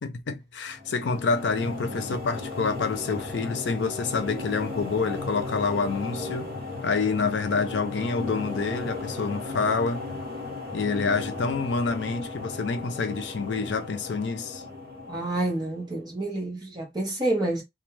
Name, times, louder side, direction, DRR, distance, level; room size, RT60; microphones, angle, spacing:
voice 1, 0.0-6.5 6.8-10.1 10.7-14.6, left 4 dB, 80° left, 0.5 m, -27 dB
sound 1, 0.7-16.0, left 3 dB, 55° right, 0.9 m, -36 dB
voice 2, 15.1-17.6, right 2 dB, 25° right, 0.8 m, -28 dB
2.3 x 2.2 x 3.1 m
head